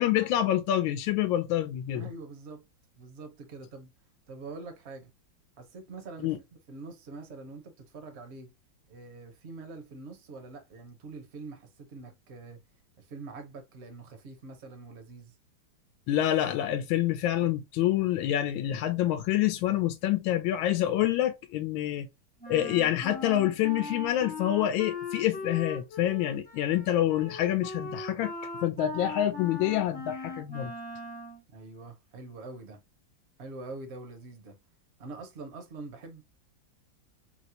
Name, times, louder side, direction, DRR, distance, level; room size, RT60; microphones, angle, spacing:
voice 1, 0.0-2.0 6.2-6.4 16.1-22.1 22.5-28.3 28.6-30.7, left 12 dB, 80° left, 1.3 m, -27 dB
voice 2, 1.9-2.6 3.0-3.9 4.3-5.1 5.6-6.3 6.7-8.5 8.9-12.6 13.0-15.3 31.5-32.8 33.4-34.6 35.0-36.2, right 3 dB, 50° right, 0.8 m, -44 dB
Wind instrument woodwind instrument, 22.4-31.4, left 3 dB, 10° left, 0.5 m, -39 dB
4.0 x 2.1 x 2.7 m
omnidirectional pair, 2.2 m